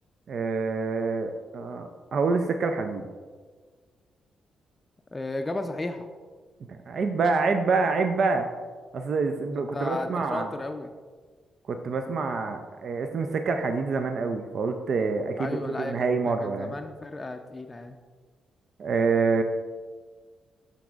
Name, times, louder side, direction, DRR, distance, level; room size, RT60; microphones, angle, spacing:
voice 1, 0.3-3.1 6.7-8.5 8.9-10.5 11.7-16.7 18.8-19.4, right 4 dB, 60° right, 6 dB, 0.4 m, -26 dB
voice 2, 5.1-6.1 9.5-10.9 15.4-18.0, left 2 dB, 25° left, 6 dB, 0.4 m, -34 dB
11.5 x 4.0 x 2.4 m, 1.5 s
hypercardioid pair, 45°, 0 cm